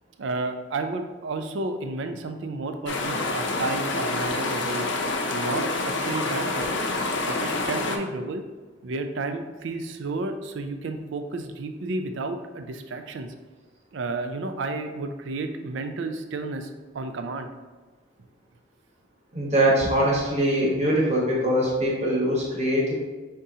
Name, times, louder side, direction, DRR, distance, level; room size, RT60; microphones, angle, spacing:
voice 1, 0.2-4.9 5.3-6.8 7.2-8.4 8.8-13.3 13.9-17.5, right 3 dB, 65° right, 7 dB, 0.4 m, -32 dB
sound 1, 2.8-8.0, left 2 dB, 60° left, 0.6 m, -27 dB
voice 2, 19.3-23.0, right 1 dB, 35° right, -4 dB, 1.2 m, -22 dB
5.3 x 3.6 x 2.7 m, 1.3 s
head